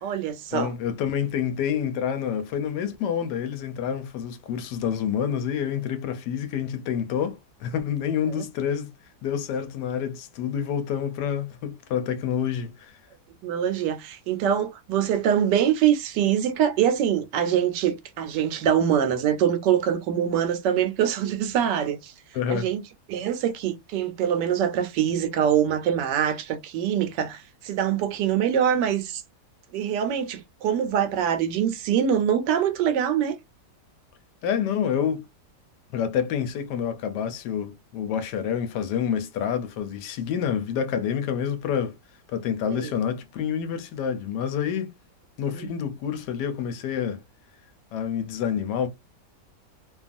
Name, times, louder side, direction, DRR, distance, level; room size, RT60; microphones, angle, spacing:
voice 1, 0.0-0.7 8.3-8.4 13.4-22.1 22.5-22.8 23.1-29.2 29.7-33.4 42.7-42.9 45.5-45.7, right 9 dB, 85° right, 1.3 m, -24 dB
voice 2, 0.5-8.9 9.2-13.0 22.3-22.7 34.4-35.2 35.9-42.0 42.3-44.9 45.4-47.2 47.9-48.9, left 8 dB, 85° left, 1.2 m, -28 dB
2.9 x 2.3 x 2.5 m
omnidirectional pair, 1.8 m